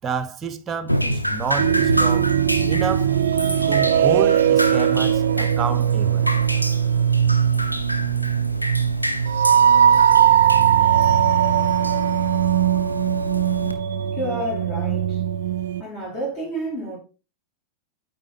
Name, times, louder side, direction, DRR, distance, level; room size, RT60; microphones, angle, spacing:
voice 1, 0.0-2.3 2.7-3.2 3.7-6.3, right 6 dB, 25° right, 0.7 m, -29 dB
Drip, 0.9-13.7, equal, 90° left, 0.6 m, -27 dB
sound 1, 1.6-15.8, right 9 dB, 60° right, 0.4 m, -19 dB
voice 2, 14.1-15.3 15.8-17.0, right 1 dB, 35° left, 2.6 m, -30 dB
8.9 x 3.8 x 3.8 m
figure-of-eight pair, 90°, 0 cm